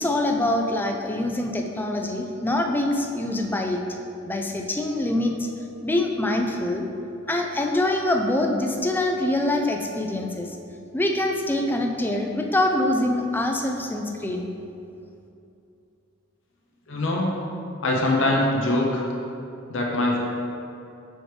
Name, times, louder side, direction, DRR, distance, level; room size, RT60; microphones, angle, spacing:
voice 1, 0.0-3.8 4.2-5.5 5.8-6.9 7.3-10.6 10.9-14.5, left 1 dB, 10° left, 2 dB, 0.4 m, -24 dB
voice 2, 16.9-17.3 17.8-19.1 19.7-20.2, left 1 dB, 60° left, -2 dB, 0.8 m, -22 dB
6.3 x 4.6 x 3.2 m, 2.7 s
head